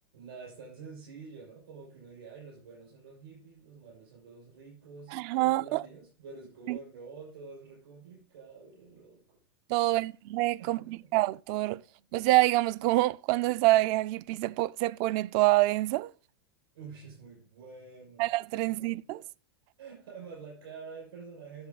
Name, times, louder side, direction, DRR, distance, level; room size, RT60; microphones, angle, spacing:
voice 1, 0.1-9.2 9.8-10.0 10.6-11.1 16.7-18.3 18.6-19.0 19.8-21.7, right 5 dB, 65° right, 6.1 m, -48 dB
voice 2, 5.1-5.8 6.7-6.8 9.7-11.8 12.1-16.1 18.2-19.2, right 18 dB, 40° right, 0.4 m, -26 dB
11.0 x 6.9 x 3.9 m
hypercardioid pair, 100°, 13 cm